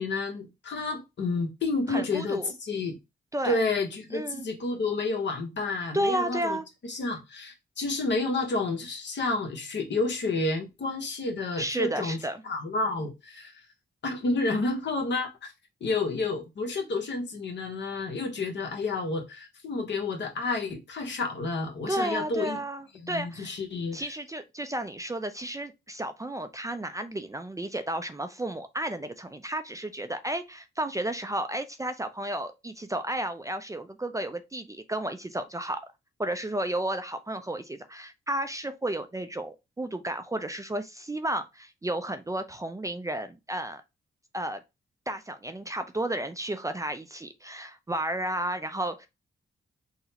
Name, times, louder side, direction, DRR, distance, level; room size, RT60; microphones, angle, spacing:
voice 1, 0.0-3.0 3.4-6.6 6.9-12.2 12.4-13.5 14.0-15.5 15.8-22.6 22.9-24.0, left 3 dB, 65° left, 1.0 m, -30 dB
voice 2, 1.9-2.5 3.3-3.6 4.1-4.5 5.9-6.7 11.6-12.4 21.9-23.6 23.9-35.8 36.2-43.8 44.3-44.6 45.1-49.1, right 1 dB, 15° right, 0.4 m, -32 dB
3.9 x 2.1 x 2.8 m
cardioid pair, 65°, 20 cm